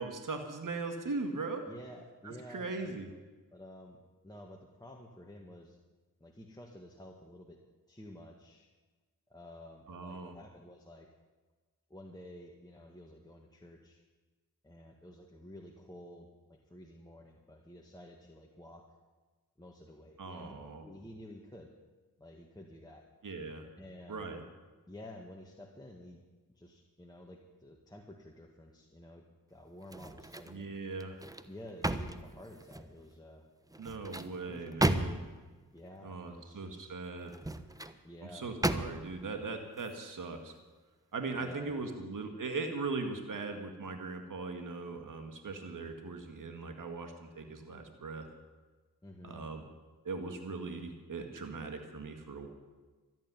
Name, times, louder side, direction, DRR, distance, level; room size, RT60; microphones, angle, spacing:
voice 1, 0.0-1.6 2.2-3.1 9.9-10.3 20.2-20.8 23.2-23.7 24.1-24.4 30.5-31.2 33.8-35.2 36.0-37.3 38.3-40.5 41.1-48.3 49.2-49.6 50.0-52.5, right 3 dB, 55° right, 5 dB, 2.0 m, -39 dB
voice 2, 1.7-3.0 3.5-5.8 6.2-8.7 9.3-11.1 11.9-14.0 14.6-18.9 19.6-20.5 20.8-21.7 22.2-23.1 23.8-24.3 24.9-26.2 26.6-30.8 31.5-33.5 34.2-34.8 35.7-36.9 38.0-38.6 41.3-42.0 49.0-49.5, left 1 dB, 10° left, 0 dB, 1.9 m, -51 dB
sound 1, 29.8-30.6 31.0-33.0 33.7-35.4 37.2-38.0 38.6-39.2 39.7-39.9, right 1 dB, 10° right, 1.0 m, -34 dB
13.0 x 9.3 x 9.7 m, 1.3 s
supercardioid pair, 45°, 39 cm